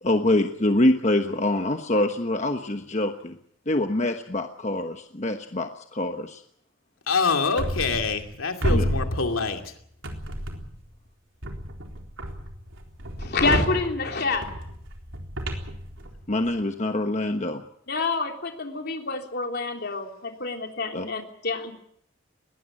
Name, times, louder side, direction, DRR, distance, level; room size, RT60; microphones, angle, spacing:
voice 1, 0.0-3.3 3.7-6.4 8.7-8.9 16.3-17.6 20.9-21.1, left 1 dB, 35° left, 6 dB, 1.2 m, -25 dB
voice 2, 7.1-9.7, left 4 dB, 85° left, 5 dB, 2.7 m, -25 dB
sound 1, 7.6-8.3 8.6-9.7 10.0-10.9 11.4-16.5, equal, 65° right, 3.9 m, -31 dB
voice 3, 13.2-14.4 17.9-21.7, left 3 dB, 50° left, 3 dB, 3.4 m, -27 dB
21.0 x 18.0 x 8.8 m, 0.67 s
head